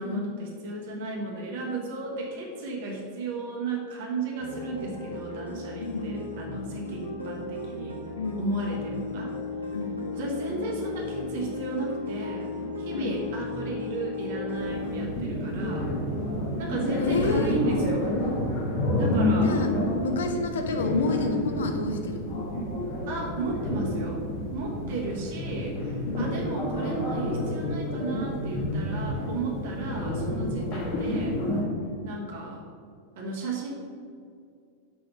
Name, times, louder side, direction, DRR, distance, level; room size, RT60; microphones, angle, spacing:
voice 1, 0.0-8.0 8.4-9.3 10.1-12.5 12.8-15.9 16.6-18.1 19.0-19.6 23.1-24.2 24.5-31.4 32.0-32.6 33.2-33.7, right 3 dB, 55° right, -1 dB, 1.3 m, -34 dB
sound 1, 4.4-14.9, left 2 dB, 90° right, 1.2 m, -35 dB
voice 2, 5.8-6.1 8.2-8.7 9.7-10.0 12.9-13.2 17.0-17.6 19.4-19.7 20.0-22.4 26.1-26.4 31.8-32.1, left 4 dB, 65° left, 5 dB, 0.8 m, -30 dB
sound 2, 14.6-31.7, left 1 dB, 40° left, 1.4 m, -29 dB
5.9 x 4.3 x 5.3 m, 2.3 s
figure-of-eight pair, 90°, 0 cm